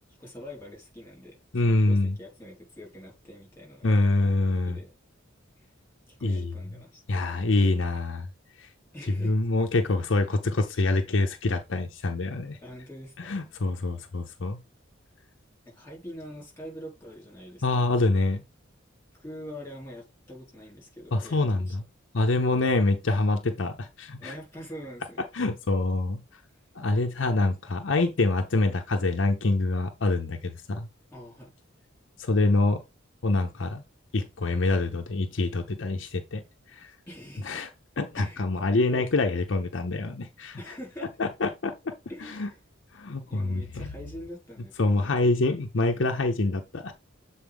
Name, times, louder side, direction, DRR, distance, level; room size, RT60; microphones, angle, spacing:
voice 1, 0.2-1.4 1.6-4.0 4.7-4.9 5.6-5.7 6.1-7.0 8.9-9.3 12.6-13.3 15.7-17.8 19.1-21.8 24.2-25.3 31.1-31.5 37.1-37.6 38.2-38.4 38.8-39.1 40.6-41.1 42.1-42.6 43.3-45.1, equal, 10° left, 4.1 m, -44 dB
voice 2, 1.5-2.2 3.8-4.8 6.2-6.5 7.1-8.3 8.6-8.7 9.1-12.6 13.2-14.6 17.6-18.4 21.1-21.8 22.1-24.3 25.3-26.2 26.8-30.9 32.2-32.8 33.2-33.8 34.1-36.4 36.7-36.9 37.4-37.7 38.0-40.6 41.2-41.9 42.2-42.5 42.9-43.9 44.8-46.9, left 2 dB, 65° left, 0.7 m, -25 dB
7.4 x 4.2 x 3.5 m
head